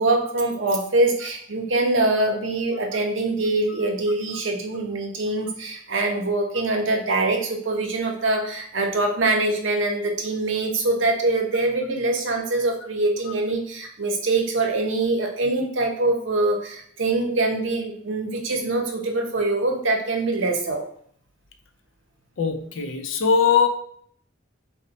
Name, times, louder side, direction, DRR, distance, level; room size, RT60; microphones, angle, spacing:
voice 1, 0.0-20.8, right 2 dB, 70° right, 2 dB, 0.8 m, -24 dB
voice 2, 22.4-23.7, left 6 dB, 80° left, 6 dB, 0.5 m, -20 dB
4.2 x 2.2 x 3.9 m, 0.62 s
head